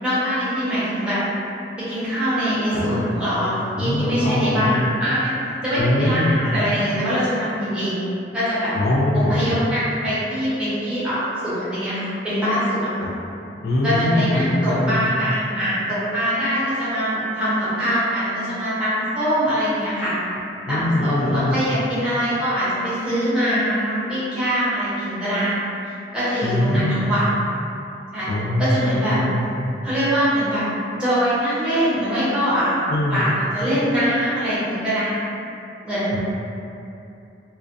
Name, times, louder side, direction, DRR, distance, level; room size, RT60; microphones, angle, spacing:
voice 1, 0.0-1.2 1.9-5.3 5.6-8.0 8.3-8.7 9.3-12.9 13.8-20.1 20.7-25.5 26.1-27.2 28.1-28.3 28.6-29.2 29.8-30.6 31.0-32.8 33.1-35.2 35.8-36.1, equal, 5° right, -13 dB, 0.7 m, -23 dB
voice 2, 2.7-3.1 3.8-4.9 5.7-6.4 8.7-9.4 13.0-13.1 13.6-15.1 20.7-21.6 26.4-27.0 28.3-29.5 32.9-33.3 36.1-36.2, left 1 dB, 55° left, -5 dB, 0.3 m, -22 dB
2.4 x 2.2 x 2.5 m, 2.7 s
head